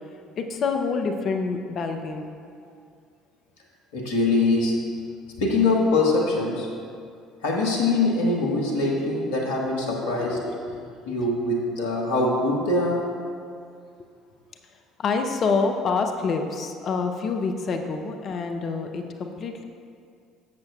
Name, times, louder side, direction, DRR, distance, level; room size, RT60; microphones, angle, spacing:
voice 1, 0.4-2.3 10.1-10.8 11.1-11.3 15.0-19.6, left 4 dB, 50° left, 5 dB, 0.8 m, -27 dB
voice 2, 3.9-4.8 5.4-6.7 7.4-10.4 11.1-13.1, left 2 dB, 75° left, -1 dB, 1.4 m, -23 dB
12.5 x 7.7 x 2.4 m, 2.3 s
hypercardioid pair, 60°, 0 cm